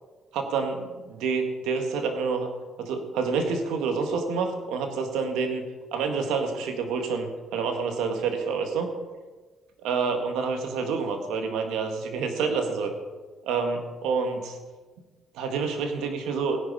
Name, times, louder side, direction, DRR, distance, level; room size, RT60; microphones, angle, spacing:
voice 1, 0.3-2.5 2.8-5.6 5.9-8.9 9.8-12.9 13.4-14.6 15.3-16.6, right 5 dB, 85° right, 5 dB, 1.7 m, -28 dB
17.0 x 10.5 x 4.2 m, 1.3 s
supercardioid pair, 60°, 0 cm